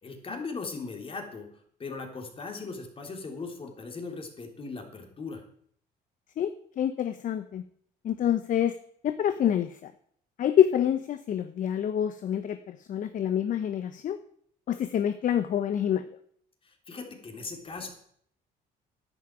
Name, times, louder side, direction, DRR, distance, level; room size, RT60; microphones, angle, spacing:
voice 1, 0.0-1.5 1.8-5.4 16.6-17.9, left 4 dB, 35° left, 4 dB, 3.4 m, -38 dB
voice 2, 6.8-7.6 8.0-8.8 9.0-9.9 10.4-14.2 14.7-16.1, left 9 dB, 50° left, 11 dB, 0.8 m, -27 dB
11.0 x 8.7 x 8.9 m, 0.64 s
cardioid pair, 110°, 17 cm